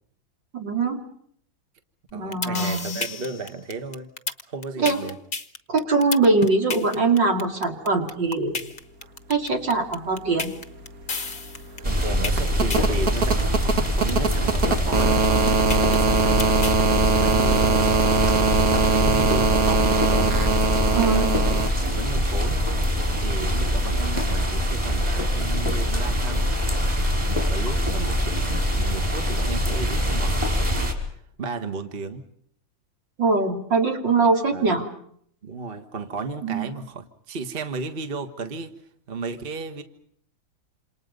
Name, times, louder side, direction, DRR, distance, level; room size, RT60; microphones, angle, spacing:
voice 1, 0.5-1.0 2.1-3.0 4.8-5.0 5.7-8.6 9.3-10.5 20.9-21.3 33.2-34.9 36.4-36.7, right 3 dB, 65° right, 3 dB, 3.6 m, -22 dB
sound 1, 2.1-16.8, left 4 dB, 30° left, 1.1 m, -31 dB
voice 2, 2.1-4.1 4.5-5.2 11.8-20.5 21.1-22.7 23.2-26.5 27.3-28.4 28.8-32.2 34.5-34.8 35.4-38.7 39.1-39.8, right 4 dB, 30° right, 7 dB, 1.6 m, -34 dB
sound 2, 10.5-10.6 10.8-21.7 23.1-23.2, right 4 dB, 50° right, 1.9 m, -22 dB
sound 3, 11.8-30.9, equal, 15° right, 4.8 m, -24 dB
28.0 x 28.0 x 5.4 m, 0.65 s
omnidirectional pair, 2.1 m